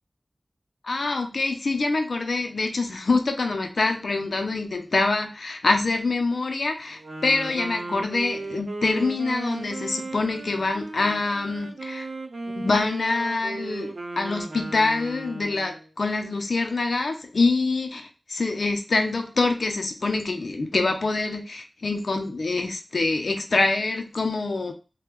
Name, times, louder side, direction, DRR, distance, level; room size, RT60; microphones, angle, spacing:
voice 1, 0.8-12.1 12.6-24.7, left 3 dB, 80° left, 5 dB, 0.5 m, -25 dB
Wind instrument woodwind instrument, 6.9-15.9, right 2 dB, 85° right, 0.7 m, -36 dB
3.4 x 2.1 x 3.0 m, 0.32 s
wide cardioid pair, 65°, 0 cm